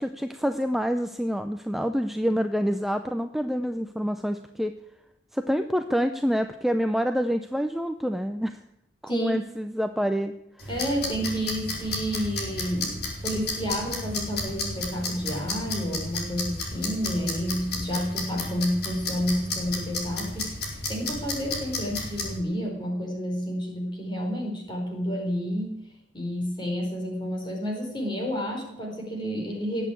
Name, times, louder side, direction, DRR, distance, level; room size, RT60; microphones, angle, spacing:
voice 1, 0.0-4.7 5.3-8.6 9.0-10.7, equal, ahead, 7 dB, 0.6 m, -27 dB
sound 1, 10.6-22.4, left 2 dB, 60° left, 4.4 m, -33 dB
voice 2, 10.7-20.5 20.9-25.8 26.1-29.9, equal, 25° left, 1 dB, 4.6 m, -30 dB
18.5 x 8.4 x 8.5 m, 0.81 s
head